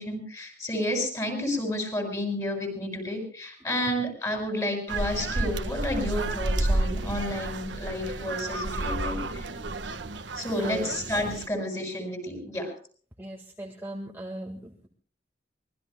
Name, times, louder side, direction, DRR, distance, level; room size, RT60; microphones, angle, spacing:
voice 1, 0.0-9.5 10.3-12.7, left 1 dB, 20° left, 5 dB, 6.4 m, -31 dB
sound 1, 4.9-11.5, right 2 dB, 80° right, 1.4 m, -31 dB
voice 2, 13.2-14.6, right 1 dB, 10° right, 0 dB, 1.7 m, -37 dB
24.5 x 20.5 x 2.2 m, 0.42 s
head